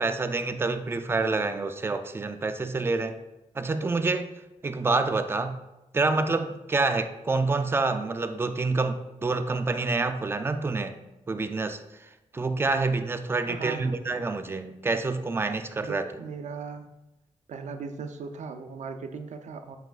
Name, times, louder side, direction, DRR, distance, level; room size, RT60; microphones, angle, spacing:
voice 1, 0.0-3.2 3.6-4.3 4.6-5.6 5.9-11.0 11.3-11.8 12.3-16.1, right 3 dB, 20° right, 9 dB, 0.3 m, -27 dB
voice 2, 13.4-14.1 15.8-16.9 17.5-19.8, right 5 dB, 75° right, 7 dB, 0.5 m, -38 dB
8.0 x 4.9 x 2.4 m, 0.99 s
wide cardioid pair, 160°, 12 cm